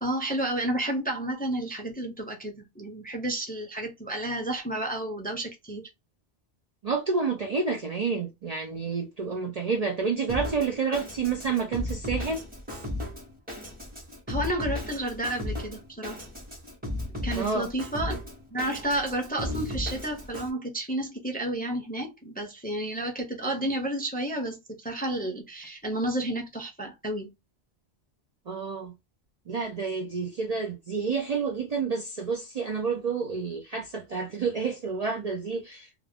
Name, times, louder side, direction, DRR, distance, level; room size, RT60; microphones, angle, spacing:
voice 1, 0.0-5.9 14.3-16.2 17.2-18.2 18.5-27.3, right 1 dB, 10° left, 0.5 m, -31 dB
voice 2, 6.8-12.4 17.3-17.7 28.5-28.9 29.5-35.9, right 5 dB, 50° right, 0.5 m, -29 dB
Drum kit, 10.3-20.5, left 1 dB, 10° right, 0.9 m, -35 dB
2.4 x 2.3 x 3.4 m
omnidirectional pair, 1.1 m